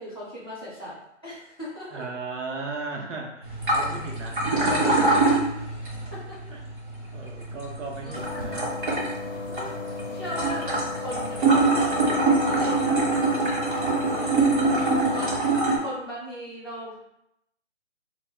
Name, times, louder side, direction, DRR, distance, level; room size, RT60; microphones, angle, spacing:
voice 1, 0.0-2.1 4.6-5.2 6.1-6.5 7.3-7.5 8.0-8.7 9.5-9.8 10.1-17.0, equal, 20° left, -10 dB, 0.5 m, -38 dB
voice 2, 1.9-5.2 6.5-6.6 7.1-8.7, right 3 dB, 70° right, 0 dB, 0.7 m, -36 dB
sound 1, 3.4-15.8, right 3 dB, 40° right, 0.8 m, -25 dB
sound 2, 8.1-15.4, left 3 dB, 85° left, 0.5 m, -35 dB
2.3 x 2.0 x 3.2 m, 0.79 s
hypercardioid pair, 165°, 38 cm